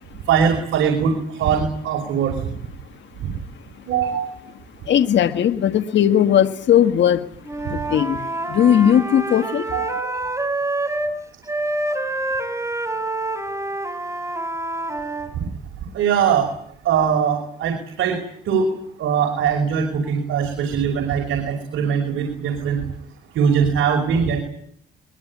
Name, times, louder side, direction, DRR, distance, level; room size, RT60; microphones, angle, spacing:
voice 1, 0.3-2.4 3.9-4.3 9.7-10.3 15.4-15.5 15.9-16.5 16.8-18.2 18.5-18.7 19.0-22.8 23.4-24.4, right 7 dB, 80° right, 4 dB, 5.5 m, -21 dB
voice 2, 4.9-7.3 7.6-9.7, left 9 dB, 65° left, 8 dB, 1.8 m, -18 dB
Wind instrument woodwind instrument, 7.4-11.2 11.5-15.3, right 2 dB, 15° right, 4.2 m, -27 dB
22.5 x 22.0 x 9.8 m, 0.63 s
cardioid pair, 90°, 20 cm